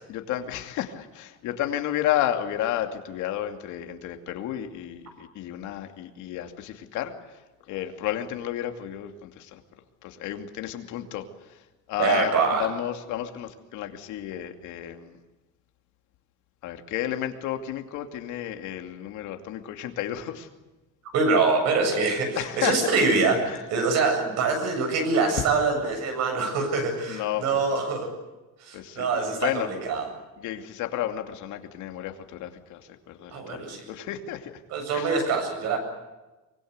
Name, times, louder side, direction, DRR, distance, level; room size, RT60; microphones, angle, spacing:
voice 1, 0.1-7.1 7.7-9.6 10.0-11.2 11.9-12.3 12.6-15.1 16.6-20.5 22.4-22.9 23.5-23.6 27.1-27.4 28.7-29.7 30.4-32.8 33.1-34.5 34.9-35.1, left 12 dB, 70° left, 5 dB, 2.6 m, -32 dB
voice 2, 12.0-12.7 21.1-28.1 28.6-30.1 33.3-33.8 34.7-35.8, right 4 dB, 55° right, 5 dB, 7.9 m, -24 dB
24.5 x 23.5 x 8.2 m, 1.1 s
cardioid pair, 180°, 31 cm